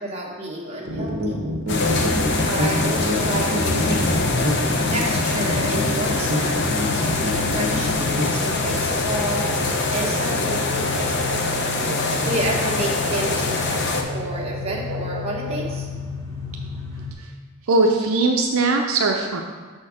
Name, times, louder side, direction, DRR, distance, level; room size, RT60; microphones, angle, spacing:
voice 1, 0.0-1.4 2.4-4.3 4.9-6.6 6.9-11.1 12.2-15.9, right 1 dB, 30° right, -4 dB, 1.2 m, -30 dB
sound 1, 0.9-15.7, equal, 50° right, 1.0 m, -28 dB
sound 2, 1.7-14.0, left 3 dB, 50° left, 0.7 m, -24 dB
sound 3, 4.1-17.1, left 4 dB, 15° left, 0.9 m, -32 dB
voice 2, 17.6-19.4, right 3 dB, 70° right, 2 dB, 0.5 m, -20 dB
6.3 x 4.4 x 4.8 m, 1.5 s
head